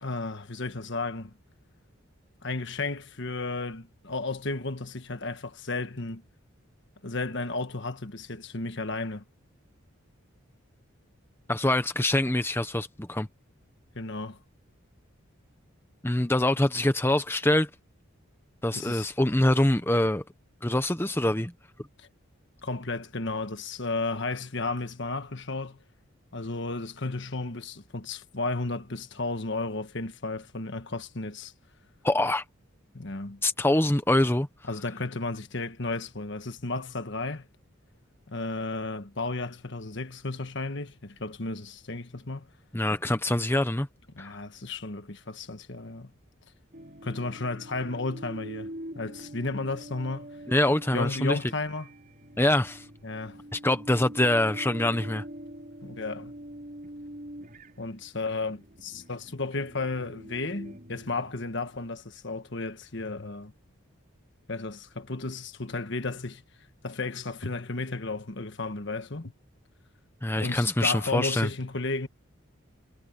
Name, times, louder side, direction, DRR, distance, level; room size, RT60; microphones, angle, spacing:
voice 1, 0.0-1.3 2.4-6.2 7.0-9.2 13.9-14.4 18.7-19.1 22.0-22.1 22.6-25.8 26.3-31.5 32.9-33.4 34.7-37.5 38.3-42.5 44.1-46.1 47.0-50.3 50.9-51.9 53.0-53.4 55.8-56.3 57.8-63.5 64.5-66.4 66.8-69.3 70.3-72.1, left 3 dB, 55° left, 1.4 m, -33 dB
voice 2, 11.5-13.3 16.0-17.7 18.6-20.2 20.6-21.5 32.0-32.4 33.4-34.5 42.7-43.9 44.2-44.3 50.5-51.4 52.4-52.8 53.5-55.2 70.2-71.5, left 1 dB, 10° left, 0.9 m, -24 dB
sound 1, 46.7-61.9, right 1 dB, 40° right, 4.4 m, -45 dB
head